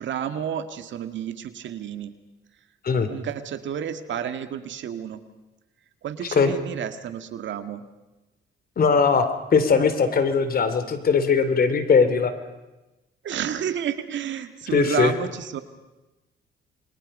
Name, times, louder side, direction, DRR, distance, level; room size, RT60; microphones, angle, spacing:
voice 1, 0.0-2.1 3.1-5.2 6.0-7.8 13.2-15.6, right 9 dB, 70° right, 9 dB, 1.9 m, -31 dB
voice 2, 8.8-12.3 14.7-15.1, left 5 dB, 50° left, 10 dB, 3.1 m, -20 dB
28.5 x 22.5 x 5.5 m, 1.0 s
cardioid pair, 90°, 20 cm